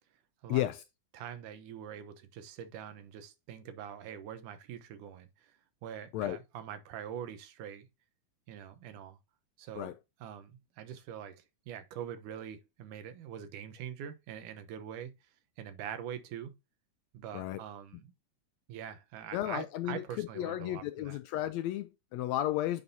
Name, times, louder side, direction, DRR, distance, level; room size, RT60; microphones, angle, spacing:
voice 1, 1.1-5.5 5.8-7.9 8.5-9.2 9.6-9.9 10.2-15.1 15.6-16.5 17.1-18.1 18.7-21.2, right 9 dB, 85° right, 2.5 m, -44 dB
voice 2, 19.3-22.8, left 14 dB, 80° left, 1.6 m, -33 dB
9.5 x 5.4 x 2.7 m
omnidirectional pair, 3.5 m